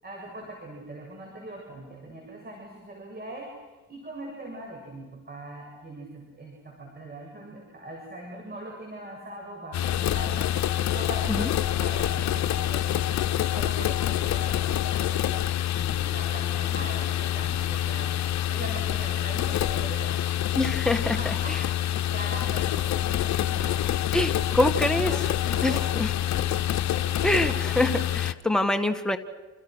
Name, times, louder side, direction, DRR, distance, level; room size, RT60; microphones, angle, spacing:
voice 1, 0.0-10.5 10.9-13.1 13.5-15.4 15.7-20.2 20.8-21.6 22.1-23.8 25.1-25.2 25.4-25.9 27.0-27.1 27.5-27.6, right 1 dB, 30° right, 0 dB, 7.5 m, -41 dB
sound 1, 9.7-28.3, left 12 dB, 65° left, 1.0 m, -26 dB
voice 2, 20.5-21.2 21.5-21.6 24.1-25.1 25.6-26.1 27.2-29.2, left 1 dB, ahead, 6 dB, 1.9 m, -25 dB
28.5 x 28.0 x 6.4 m, 1.2 s
cardioid pair, 90°, 30 cm